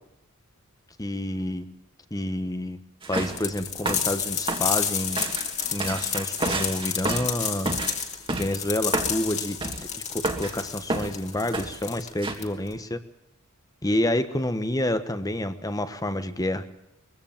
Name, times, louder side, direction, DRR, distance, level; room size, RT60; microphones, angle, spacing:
voice 1, 1.0-1.6 2.1-2.8 3.1-5.2 5.7-7.8 8.4-9.6 10.4-13.0 13.8-16.8, left 1 dB, 15° left, 11 dB, 1.3 m, -28 dB
sound 1, 3.0-3.5 3.9-4.1 4.5-8.6 8.9-9.2 9.6-9.9 10.2-10.6 10.9-11.2 11.5-11.8 12.2-12.3, right 2 dB, 25° right, 2.4 m, -30 dB
sound 2, 3.4-12.8, left 7 dB, 30° left, 2.8 m, -30 dB
23.0 x 16.5 x 7.3 m, 0.88 s
head